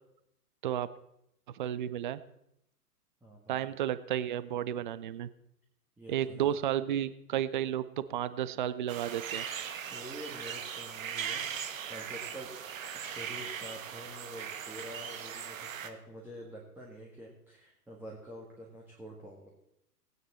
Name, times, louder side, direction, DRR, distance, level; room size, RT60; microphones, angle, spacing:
voice 1, 1.5-2.2 3.5-5.3 6.1-9.5, right 11 dB, 35° right, 15 dB, 0.4 m, -32 dB
voice 2, 3.2-3.7 6.0-6.5 9.9-12.5 12.9-19.5, equal, 5° right, -3 dB, 1.6 m, -47 dB
sound 1, 8.9-15.9, right 8 dB, 55° right, 1.3 m, -39 dB
17.5 x 9.4 x 4.2 m, 0.81 s
figure-of-eight pair, 115°, 48 cm